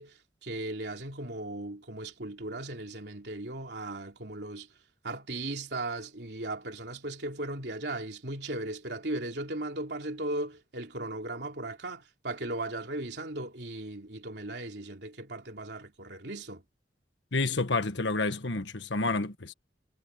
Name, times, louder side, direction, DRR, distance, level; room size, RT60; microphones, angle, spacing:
voice 1, 0.0-4.7 5.0-16.6, right 2 dB, 70° right, 3.1 m, -37 dB
voice 2, 17.3-19.5, left 3 dB, 90° left, 1.5 m, -29 dB
head